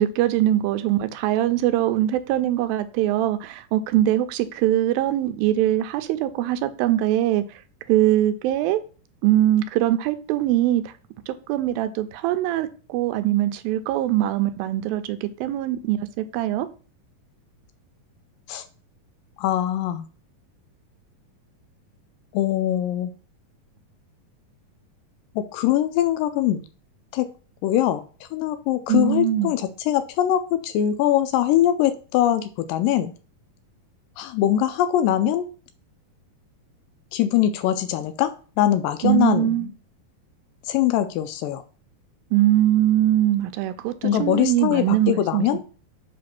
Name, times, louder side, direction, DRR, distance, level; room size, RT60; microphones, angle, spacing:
voice 1, 0.0-7.4 7.9-8.8 9.2-10.9 11.3-16.7 28.9-29.5 39.0-39.7 42.3-45.6, right 13 dB, 85° right, 2.4 m, -22 dB
voice 2, 19.4-20.1 22.3-23.1 25.4-26.6 27.1-27.3 27.6-33.1 34.2-35.5 37.1-38.3 38.6-39.7 40.7-41.6 44.0-45.6, left 12 dB, 80° left, 2.1 m, -22 dB
7.7 x 3.1 x 5.8 m
omnidirectional pair, 4.2 m